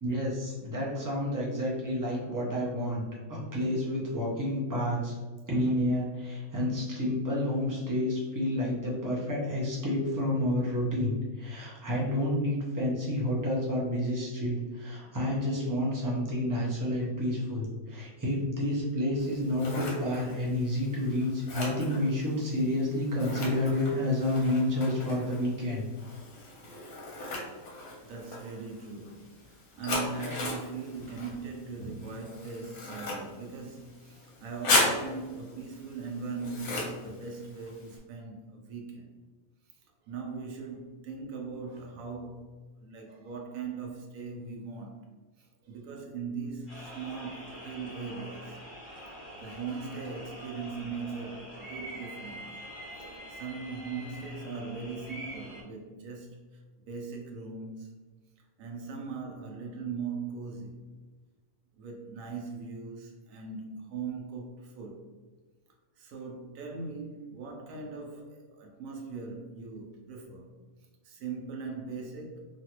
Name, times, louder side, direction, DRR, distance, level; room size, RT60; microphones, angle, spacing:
voice 1, 0.0-3.0 3.3-5.1 5.5-25.9, left 1 dB, 25° right, 0.4 m, -29 dB
Scissors, 19.2-38.0, left 2 dB, 85° left, 1.3 m, -37 dB
voice 2, 28.0-39.1 40.1-45.1 45.4-48.6 49.4-52.5 52.9-53.0 53.3-58.0 58.6-60.8 61.7-65.0 66.0-70.5 71.0-72.5, right 4 dB, 70° right, 1.0 m, -40 dB
sound 1, 46.7-55.6, equal, 35° left, 1.3 m, -45 dB
3.1 x 2.4 x 2.9 m
omnidirectional pair, 1.5 m